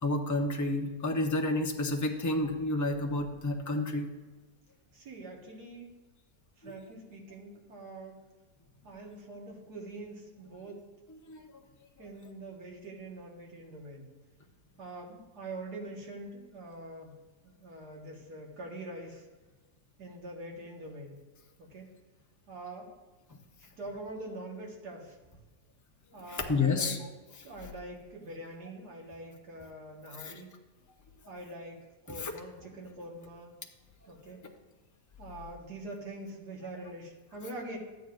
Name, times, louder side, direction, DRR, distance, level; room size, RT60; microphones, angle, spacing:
voice 1, 0.0-4.1 6.6-6.7 11.3-11.4 26.3-27.0 30.2-30.3 32.2-32.3 34.1-34.2, left 2 dB, 30° left, 2 dB, 0.3 m, -30 dB
voice 2, 4.9-5.9 6.6-8.2 8.8-10.8 12.0-14.1 14.8-17.2 17.4-19.3 20.0-21.2 21.6-21.9 22.5-22.9 23.6-25.2 26.1-27.0 27.4-30.5 31.3-33.6 34.1-34.4 35.2-37.8, right 2 dB, 75° right, 0 dB, 2.1 m, -44 dB
13.0 x 9.1 x 2.6 m, 1.3 s
omnidirectional pair, 1.7 m